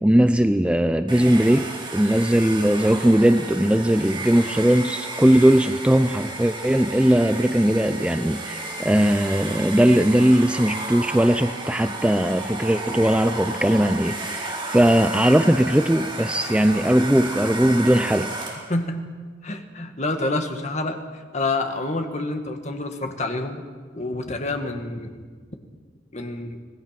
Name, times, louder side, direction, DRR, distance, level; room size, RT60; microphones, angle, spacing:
voice 1, 0.0-18.3, right 1 dB, 5° right, 9 dB, 0.5 m, -19 dB
Domestic sounds home sounds, 1.1-18.8, right 2 dB, 25° right, 4.0 m, -33 dB
voice 2, 18.7-19.0 19.4-23.6 23.9-25.3 26.1-26.6, left 2 dB, 40° left, 5 dB, 1.8 m, -28 dB
25.5 x 18.5 x 6.0 m, 1.5 s
head